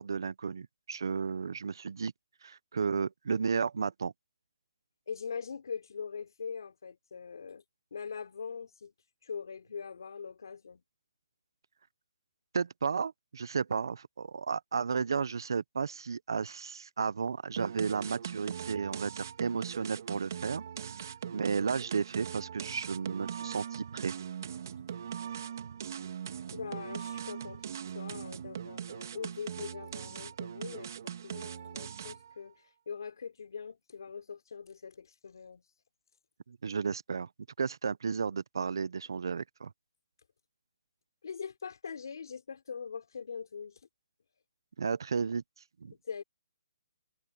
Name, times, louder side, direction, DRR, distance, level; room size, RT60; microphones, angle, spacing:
voice 1, 0.0-2.1 2.4-4.1 12.5-24.1 36.5-37.3 37.6-39.7 44.8-45.4 45.8-45.9, right 5 dB, 70° right, 0.8 m, -33 dB
voice 2, 5.1-7.6 7.9-8.9 9.2-10.8 26.5-27.6 27.9-35.6 41.2-43.8 46.0-46.2, left 6 dB, 65° left, 3.5 m, -42 dB
sound 1, 17.6-32.3, right 8 dB, 50° right, 3.3 m, -41 dB
hypercardioid pair, 165°, 2 cm